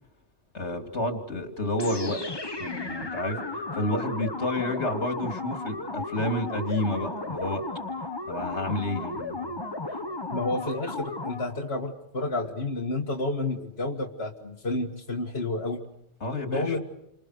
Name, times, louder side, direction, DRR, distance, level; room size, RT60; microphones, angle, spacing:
voice 1, 0.5-2.2 2.6-7.7 8.3-9.5 9.9-10.0 16.2-16.8, left 1 dB, 80° left, 4 dB, 3.3 m, -30 dB
sound 1, 1.8-11.6, left 2 dB, 20° left, 1.3 m, -34 dB
voice 2, 10.3-15.8 16.5-16.8, left 2 dB, 65° left, 0 dB, 2.1 m, -30 dB
29.5 x 26.5 x 6.7 m, 0.81 s
omnidirectional pair, 1.1 m